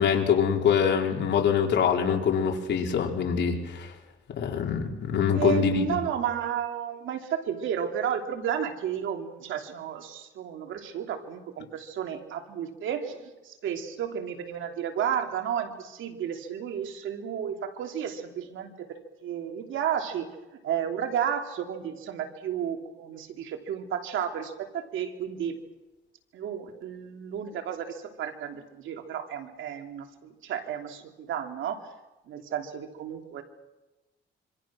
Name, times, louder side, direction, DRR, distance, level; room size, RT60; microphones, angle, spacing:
voice 1, 0.0-3.9 4.4-6.0, left 7 dB, 65° left, 1 dB, 4.5 m, -24 dB
voice 2, 5.3-18.9 19.2-20.3 20.6-25.6 26.3-31.8 32.3-33.4, right 9 dB, 80° right, 4 dB, 3.0 m, -32 dB
26.0 x 26.0 x 6.3 m, 1.1 s
cardioid pair, 90°, 20 cm